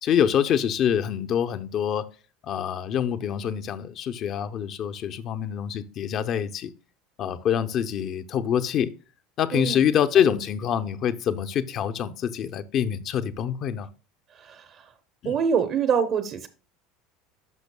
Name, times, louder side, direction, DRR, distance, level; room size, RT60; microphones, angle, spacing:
voice 1, 0.0-2.0 2.4-6.7 7.2-8.9 9.4-13.9 15.2-15.4, left 9 dB, 50° left, 0.7 m, -25 dB
voice 2, 9.5-9.8 14.3-14.9 15.2-16.5, right 7 dB, 50° right, 0.8 m, -25 dB
11.0 x 5.9 x 2.2 m
hypercardioid pair, 85°, 0 cm